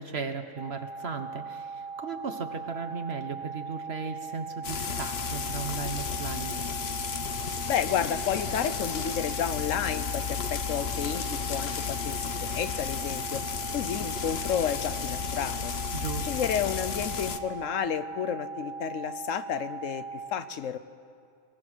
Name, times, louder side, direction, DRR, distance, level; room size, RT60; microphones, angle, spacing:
voice 1, 0.0-6.6 15.9-16.3, right 5 dB, 55° right, 7 dB, 1.1 m, -36 dB
sound 1, 0.6-20.3, right 5 dB, 25° right, 1.1 m, -39 dB
Frying (food), 4.6-17.4, left 8 dB, 55° left, 1.0 m, -33 dB
voice 2, 7.7-13.4 13.7-15.7 16.2-20.8, left 8 dB, 80° left, 12 dB, 1.1 m, -31 dB
21.5 x 20.0 x 6.2 m, 2.4 s
omnidirectional pair, 1.3 m